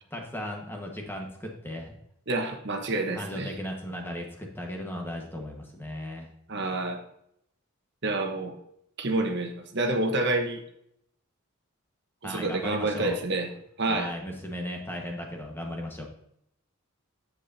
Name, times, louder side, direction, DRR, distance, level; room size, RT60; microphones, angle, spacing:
voice 1, 0.1-1.9 3.1-6.3 12.2-13.2 13.9-16.1, left 1 dB, 10° left, 1 dB, 1.4 m, -36 dB
voice 2, 2.3-3.5 6.5-7.0 8.0-8.5 9.0-10.6 12.2-13.5 13.8-14.1, right 2 dB, 55° right, 3 dB, 1.2 m, -28 dB
9.8 x 7.6 x 2.8 m, 0.73 s
head